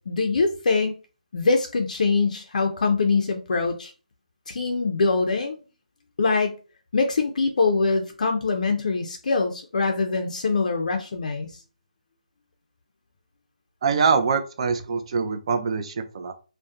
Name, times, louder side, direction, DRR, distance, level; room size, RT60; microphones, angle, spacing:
voice 1, 0.1-0.9 1.3-3.9 4.5-5.6 6.2-6.5 6.9-11.5, left 4 dB, 60° left, 0.4 m, -23 dB
voice 2, 13.8-16.3, right 5 dB, 40° right, 0.4 m, -24 dB
2.6 x 2.1 x 2.3 m
figure-of-eight pair, 150°, 5 cm